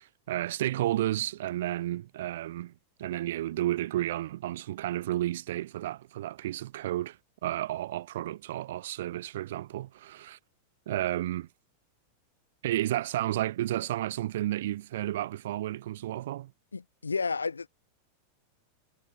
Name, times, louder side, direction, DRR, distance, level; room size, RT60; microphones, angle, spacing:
voice 1, 0.0-2.7 3.0-7.2 7.4-10.4 10.9-11.5 12.6-16.5, right 14 dB, 55° right, 4.5 m, -32 dB
voice 2, 16.7-17.7, left 4 dB, 75° left, 2.5 m, -31 dB
figure-of-eight pair, 90°, 0 cm